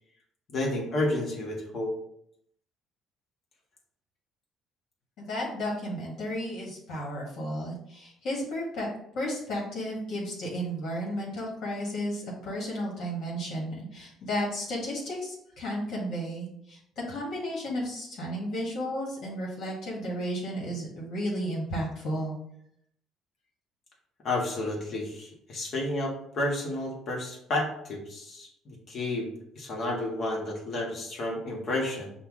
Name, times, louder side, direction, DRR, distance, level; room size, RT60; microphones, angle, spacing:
voice 1, 0.5-1.9 24.2-32.1, left 1 dB, 50° left, -2 dB, 1.5 m, -31 dB
voice 2, 5.2-8.9 9.1-16.8 17.1-22.3, equal, 65° left, -4 dB, 1.6 m, -33 dB
5.6 x 2.4 x 3.7 m, 0.73 s
cardioid pair, 95°, 0 cm